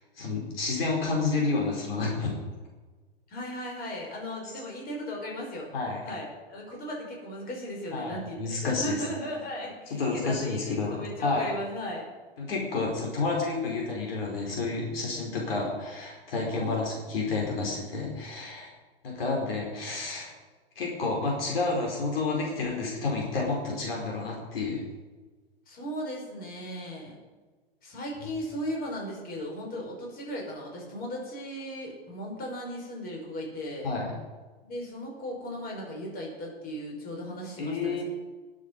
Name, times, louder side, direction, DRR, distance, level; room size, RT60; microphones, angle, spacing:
voice 1, 0.2-2.3 5.7-6.0 7.9-9.0 10.0-11.5 12.4-18.7 19.0-20.3 20.7-24.8 33.8-34.1 37.6-38.0, left 3 dB, 65° left, -2 dB, 4.8 m, -30 dB
voice 2, 3.3-5.8 6.0-12.1 16.5-16.9 25.7-27.2 27.8-33.9 34.6-38.0, equal, 30° left, -1 dB, 5.7 m, -37 dB
20.0 x 8.6 x 5.6 m, 1.3 s
figure-of-eight pair, 105°, 31 cm